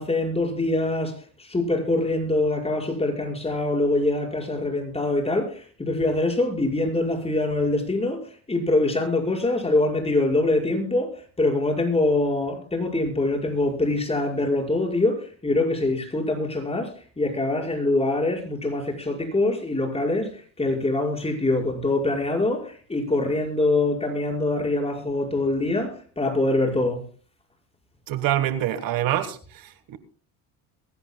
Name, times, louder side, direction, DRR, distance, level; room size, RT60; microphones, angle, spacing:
voice 1, 0.0-27.1, left 2 dB, 15° left, 5.6 m, -24 dB
voice 2, 28.1-30.0, right 12 dB, 60° right, 1.4 m, -26 dB
22.5 x 16.0 x 2.2 m
supercardioid pair, 95°, 38 cm